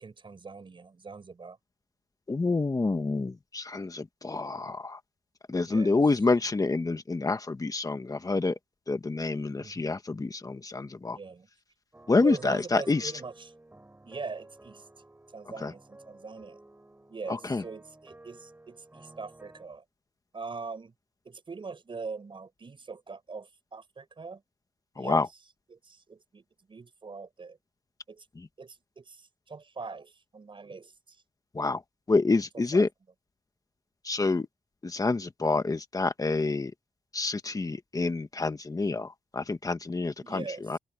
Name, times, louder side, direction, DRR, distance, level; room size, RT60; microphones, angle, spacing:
voice 1, 0.0-1.6 5.6-6.0 9.6-9.8 11.1-11.5 12.2-13.3 14.0-14.8 15.3-16.6 17.1-19.8 20.3-20.9 21.2-24.4 24.9-25.2 25.7-27.6 28.1-28.3 28.6-31.2 32.7-32.9 40.2-40.6, right 4 dB, 40° right, 4.9 m, -42 dB
voice 2, 2.3-5.0 5.5-8.6 8.9-11.2 12.1-13.1 15.6-15.7 17.3-17.6 25.0-25.3 28.3-28.5 31.5-31.8 32.1-32.9 34.0-34.5 34.8-36.7 37.1-40.8, left 3 dB, 25° left, 1.5 m, -28 dB
sound 1, 11.9-19.7, right 2 dB, 15° right, 7.6 m, -53 dB
open air
wide cardioid pair, 115°, 13 cm